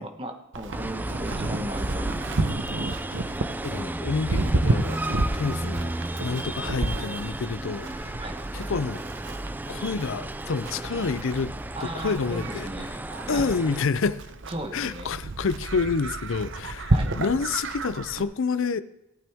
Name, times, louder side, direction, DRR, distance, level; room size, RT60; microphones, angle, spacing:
voice 1, 0.0-2.3 8.2-8.4 11.8-12.9 13.3-13.5 14.5-15.1 16.9-17.1, right 1 dB, 25° right, 1.3 m, -36 dB
Livestock farm animals working animals, 0.5-18.2, right 2 dB, 60° right, 0.8 m, -31 dB
sound 1, 0.7-13.8, right 1 dB, 10° right, 0.3 m, -33 dB
voice 2, 3.6-5.9 6.2-8.2 8.5-9.0 9.7-11.5 11.8-12.9 13.3-14.2 14.7-18.8, left 4 dB, 65° left, 0.5 m, -28 dB
18.0 x 9.0 x 3.6 m
head